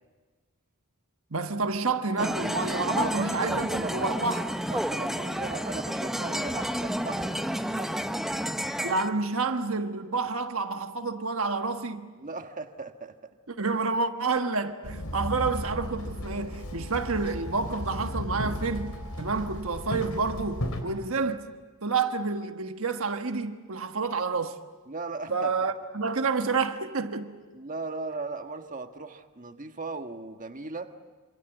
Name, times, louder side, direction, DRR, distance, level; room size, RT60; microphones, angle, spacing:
voice 1, 1.3-4.5 8.8-12.1 13.5-21.4 21.8-24.5 25.3-27.3, right 4 dB, 65° right, 1.4 m, -29 dB
sound 1, 2.2-9.1, equal, ahead, 0.9 m, -30 dB
voice 2, 2.7-4.4 4.7-7.3 7.7-7.9 12.2-13.3 24.9-25.7 27.5-30.9, right 3 dB, 35° right, 1.5 m, -38 dB
Walk footsteps / Chatter / Hiss, 14.8-20.8, left 1 dB, 85° left, 4.0 m, -35 dB
26.5 x 26.5 x 8.0 m
head